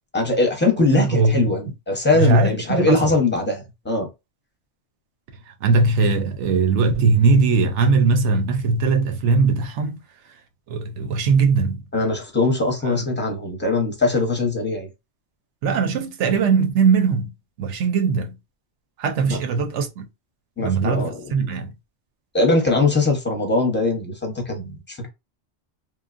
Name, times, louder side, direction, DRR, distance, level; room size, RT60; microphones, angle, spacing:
voice 1, 0.1-4.1 11.9-14.9 19.3-19.4 20.6-21.5 22.3-25.1, left 2 dB, 10° left, 0.6 m, -21 dB
voice 2, 0.9-1.5 2.1-3.1 5.5-10.0 10.7-11.8 12.8-13.1 15.6-17.3 17.6-18.4 19.0-20.1 20.6-21.7, right 4 dB, 80° right, 0.9 m, -20 dB
3.1 x 2.1 x 2.4 m
omnidirectional pair, 1.2 m